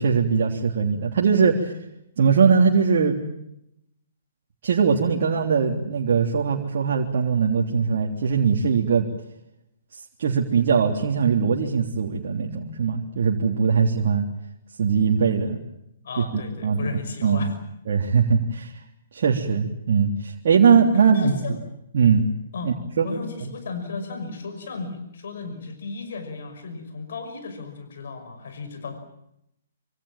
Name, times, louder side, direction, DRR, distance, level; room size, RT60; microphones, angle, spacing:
voice 1, 0.0-1.7 2.2-3.2 4.6-9.1 10.2-14.2 14.8-15.6 16.2-17.5 17.9-18.7 19.1-21.4 21.9-22.3 22.6-23.1 23.4-23.5, right 6 dB, 60° right, -1 dB, 3.4 m, -21 dB
voice 2, 16.0-17.5 20.9-21.6 22.5-22.8 23.0-29.0, left 4 dB, 65° left, 8 dB, 5.8 m, -35 dB
26.5 x 26.0 x 7.4 m, 0.79 s
figure-of-eight pair, 125°, 0 cm